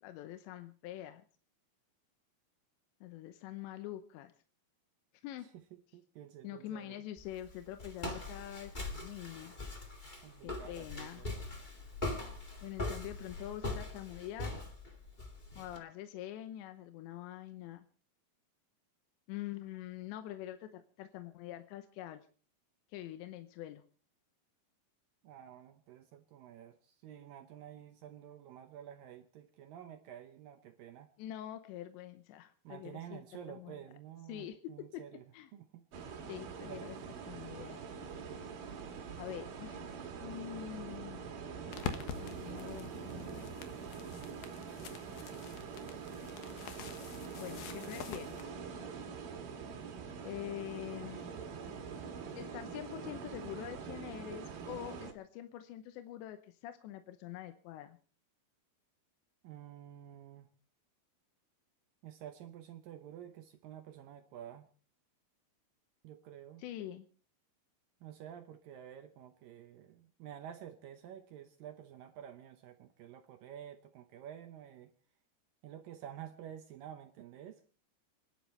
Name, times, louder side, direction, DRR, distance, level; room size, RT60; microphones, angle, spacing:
voice 1, 0.0-1.2 3.0-4.3 5.2-5.5 6.4-9.5 10.4-11.2 12.6-14.6 15.6-17.9 19.3-22.3 22.9-23.8 31.2-33.2 33.5-33.8 34.3-35.5 36.3-37.0 37.3-37.8 39.2-39.8 40.2-41.3 42.2-43.7 47.4-48.5 50.2-51.2 52.4-58.0 66.6-67.1, left 13 dB, 85° left, 8 dB, 3.1 m, -45 dB
voice 2, 5.9-7.0 10.2-11.3 25.2-31.1 32.6-35.3 35.5-35.9 36.6-37.2 59.4-60.5 62.0-64.7 66.0-66.6 68.0-74.9 75.6-77.6, right 10 dB, 75° right, 6 dB, 2.1 m, -50 dB
Walk footsteps, 7.2-15.8, left 2 dB, 30° left, 0.8 m, -41 dB
sound 1, 35.9-55.1, right 6 dB, 55° right, 3.2 m, -44 dB
sound 2, 41.7-48.4, left 8 dB, 65° left, 2.6 m, -46 dB
29.5 x 11.5 x 3.2 m, 0.39 s
omnidirectional pair, 5.1 m